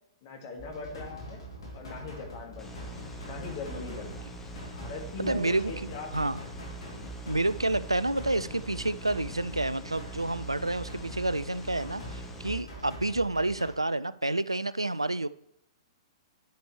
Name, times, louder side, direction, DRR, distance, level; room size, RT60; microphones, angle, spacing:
voice 1, 0.2-1.4 1.7-2.7 3.2-4.2 4.7-6.1 6.8-7.1, left 3 dB, 40° left, 2 dB, 2.2 m, -40 dB
sound 1, 0.6-13.7, equal, 65° left, 2.9 m, -44 dB
sound 2, 2.6-12.6, right 2 dB, 10° left, 1.4 m, -44 dB
voice 2, 5.2-5.7 6.1-6.4 7.3-15.3, right 2 dB, 90° right, 17 dB, 0.4 m, -29 dB
10.5 x 6.8 x 3.2 m, 0.74 s
figure-of-eight pair, 110°, 3 cm